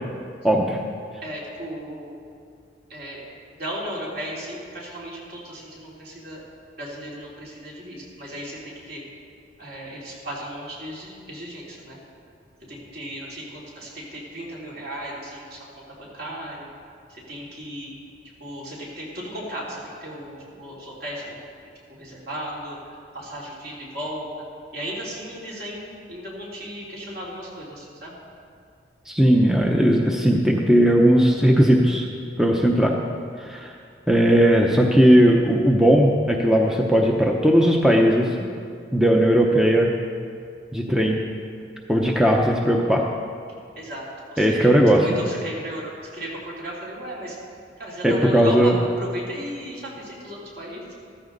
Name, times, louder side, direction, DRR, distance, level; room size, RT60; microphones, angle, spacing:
voice 1, 0.4-0.8 29.1-32.1 32.4-32.9 33.4-33.7 34.1-38.3 38.9-39.9 40.7-41.2 41.9-43.0 44.4-45.1 48.0-48.8, equal, 5° right, 0 dB, 0.7 m, -17 dB
voice 2, 1.2-2.2 2.9-3.2 3.6-6.4 6.8-9.0 9.6-12.0 12.7-15.7 16.0-16.6 17.1-17.9 18.4-22.8 23.1-24.3 24.7-28.1 40.9-41.0 43.7-44.7 45.0-46.3 46.6-47.3 47.8-50.9, equal, 55° right, -5 dB, 3.4 m, -35 dB
14.0 x 13.5 x 4.0 m, 2.3 s
head